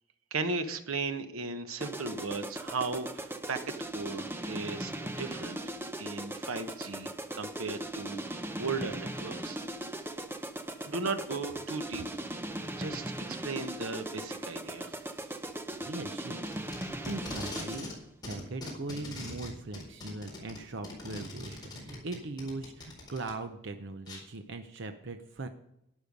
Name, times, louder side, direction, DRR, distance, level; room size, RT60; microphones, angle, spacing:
voice 1, 0.3-3.6 3.9-5.6 6.0-9.6 9.9-10.0 10.9-12.1 12.8-15.0, right 4 dB, 85° right, 9 dB, 1.1 m, -36 dB
sound 1, 1.8-18.0, right 1 dB, 10° right, 0.7 m, -39 dB
voice 2, 15.8-16.4 16.7-17.9 18.3-25.5, right 2 dB, 60° right, 7 dB, 0.8 m, -40 dB
Packing tape duct tape, 16.2-18.0 18.2-23.3 24.1-24.2, left 2 dB, 20° left, 4.3 m, -42 dB
12.0 x 10.0 x 5.3 m, 0.80 s
head